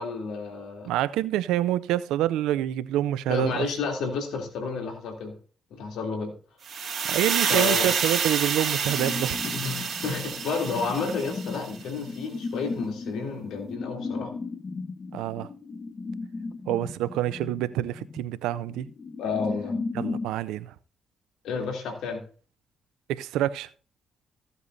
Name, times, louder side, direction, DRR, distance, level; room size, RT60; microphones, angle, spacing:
voice 1, 0.0-0.9 3.3-5.3 5.7-6.3 7.5-7.9 9.4-14.3 19.2-19.8 21.4-22.2, left 4 dB, 80° left, 3.0 m, -31 dB
voice 2, 0.9-3.6 7.1-9.4 15.1-15.5 16.7-18.9 19.9-20.7 23.1-23.7, right 13 dB, 85° right, 0.4 m, -27 dB
sound 1, 6.7-11.7, right 6 dB, 60° right, 2.1 m, -28 dB
sound 2, 8.9-20.3, left 4 dB, 45° left, 1.2 m, -36 dB
15.0 x 8.1 x 2.7 m
supercardioid pair, 55°, 0 cm